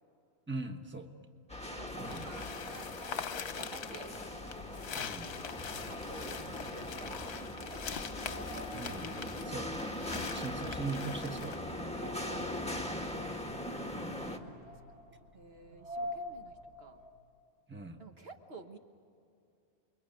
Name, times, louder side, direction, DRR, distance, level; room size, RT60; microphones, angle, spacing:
voice 1, 0.5-1.1 2.0-2.2 4.9-5.3 8.7-11.8 14.0-14.2 17.7-18.0, right 3 dB, 10° right, 4 dB, 1.4 m, -41 dB
sound 1, 1.5-14.4, left 1 dB, 5° left, 1.6 m, -40 dB
voice 2, 1.7-3.2 3.5-4.1 5.8-7.9 9.4-9.6 12.0-13.3 14.7-17.0 18.0-18.8, right 3 dB, 60° right, 5 dB, 1.7 m, -53 dB
sound 2, 2.1-11.6, left 7 dB, 70° left, 1.1 m, -43 dB
sound 3, 4.7-17.2, left 1 dB, 80° right, 5.5 m, -49 dB
28.5 x 23.0 x 9.2 m, 2.5 s
omnidirectional pair, 1.2 m